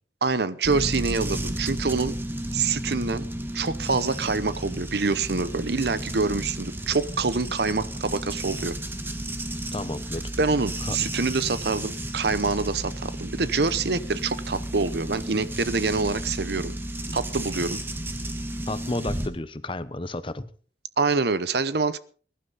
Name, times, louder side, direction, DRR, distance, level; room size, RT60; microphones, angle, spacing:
voice 1, 0.2-2.1 2.5-3.3 3.5-8.7 10.4-16.7 17.1-17.8 21.0-22.0, right 4 dB, 65° right, 15 dB, 0.8 m, -26 dB
sound 1, 0.6-19.3, right 1 dB, 10° right, 1.4 m, -33 dB
voice 2, 9.7-10.3 10.8-11.0 17.1-17.2 18.7-20.5, left 2 dB, 30° left, 14 dB, 0.8 m, -32 dB
21.0 x 11.5 x 4.1 m, 0.42 s
head